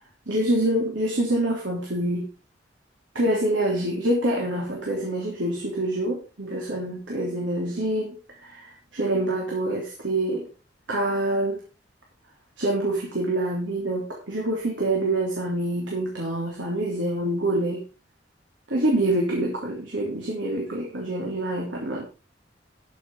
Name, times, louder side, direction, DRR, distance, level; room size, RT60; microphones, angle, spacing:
voice 1, 0.3-2.3 3.1-8.1 8.4-10.4 10.9-11.6 12.6-17.8 18.7-22.1, right 1 dB, 85° right, -1 dB, 3.3 m, -26 dB
13.5 x 6.6 x 4.7 m, 0.34 s
head